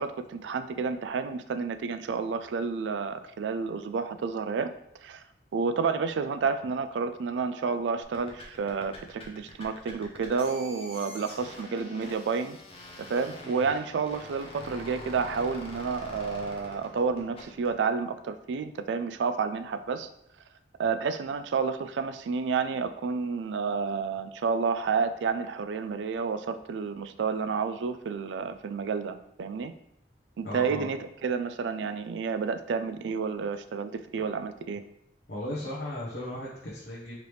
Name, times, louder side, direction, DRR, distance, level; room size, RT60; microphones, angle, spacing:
voice 1, 0.0-4.7 5.0-5.2 5.5-12.6 13.0-20.1 20.8-29.7 30.4-34.8, right 5 dB, 85° right, 10 dB, 0.3 m, -30 dB
sound 1, 8.0-17.7, left 2 dB, 30° left, 0.8 m, -45 dB
voice 2, 30.4-30.9 35.3-37.2, left 1 dB, 70° left, -7 dB, 1.0 m, -36 dB
4.8 x 3.4 x 3.1 m, 0.74 s
head